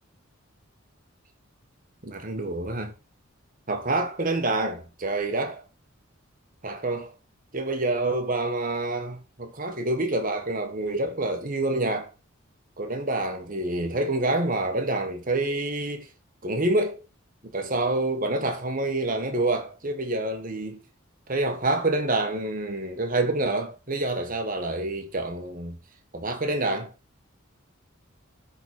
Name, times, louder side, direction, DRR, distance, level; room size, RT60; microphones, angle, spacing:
voice 1, 2.0-2.9 3.7-5.6 6.6-7.1 7.5-12.1 12.8-16.1 16.4-17.0 17.4-20.8 21.3-25.8 26.1-26.9, right 2 dB, 40° right, 1.3 m, -27 dB
10.0 x 4.1 x 4.7 m
head